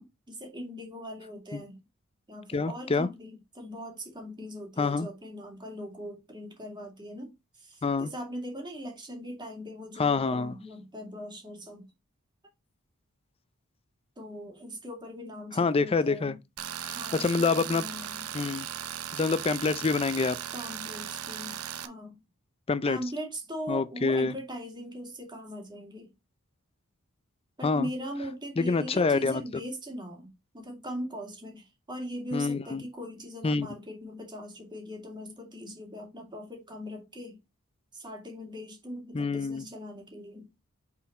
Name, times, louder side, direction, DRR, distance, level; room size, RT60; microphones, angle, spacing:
voice 1, 0.0-1.8 2.3-11.9 14.2-16.4 16.9-18.3 20.5-22.2 22.9-26.1 27.6-37.4 37.9-40.5, equal, 20° right, 2.2 m, -40 dB
voice 2, 2.5-3.1 4.8-5.1 7.8-8.1 10.0-10.6 15.5-16.4 16.8-17.8 18.3-18.7 19.1-20.4 22.7-23.0 23.7-24.3 27.6-27.9 28.6-29.4 32.3-32.8 33.4-33.7 39.1-39.6, left 4 dB, 25° left, 0.4 m, -26 dB
Tools, 16.6-21.9, right 10 dB, 85° right, 0.7 m, -37 dB
5.8 x 4.4 x 4.2 m
head